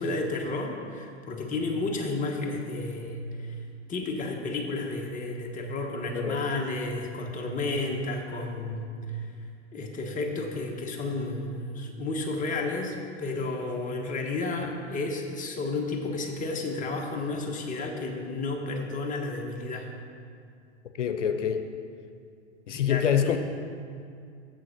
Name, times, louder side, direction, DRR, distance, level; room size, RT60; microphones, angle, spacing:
voice 1, 0.0-3.6 3.9-9.3 9.7-19.9 22.7-23.4, left 2 dB, 20° left, 1 dB, 1.1 m, -32 dB
voice 2, 21.0-21.6 22.7-23.4, left 8 dB, 85° left, 8 dB, 0.6 m, -25 dB
7.0 x 6.2 x 5.9 m, 2.3 s
hypercardioid pair, 100°, 35 cm